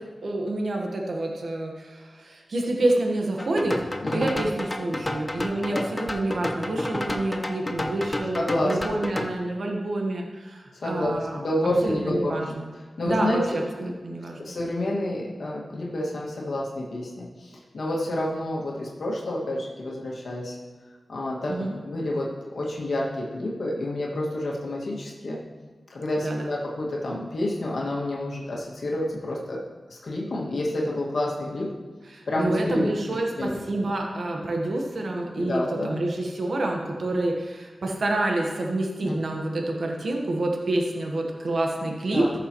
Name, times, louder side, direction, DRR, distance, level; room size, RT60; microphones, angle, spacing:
voice 1, 0.2-11.4 11.8-12.7 13.0-14.6 21.5-21.7 26.2-26.5 32.1-42.3, right 2 dB, 70° right, 1 dB, 1.2 m, -28 dB
sound 1, 3.4-9.3, left 1 dB, 20° left, 0.7 m, -31 dB
voice 2, 4.0-4.3 5.7-5.8 8.3-8.8 10.8-12.6 13.0-13.9 14.4-20.6 21.1-25.4 25.9-29.6 29.9-31.7 32.3-32.9 33.4-33.6 35.4-36.0 39.0-39.4 42.1-42.3, left 1 dB, 70° left, -4 dB, 1.8 m, -29 dB
14.0 x 6.7 x 3.0 m, 1.3 s
cardioid pair, 65°, 0 cm